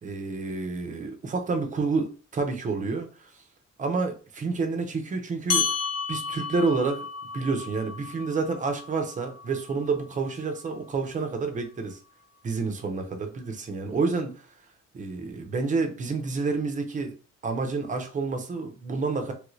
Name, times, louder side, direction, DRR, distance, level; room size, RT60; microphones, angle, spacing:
voice 1, 0.0-3.3 3.8-5.7 6.1-7.1 7.3-12.0 12.4-14.4 14.9-17.2 17.4-19.3, right 4 dB, 25° right, 5 dB, 0.5 m, -29 dB
sound 1, 5.5-10.3, left 5 dB, 60° left, 0.9 m, -32 dB
3.1 x 2.5 x 3.0 m, 0.37 s
wide cardioid pair, 175°, 29 cm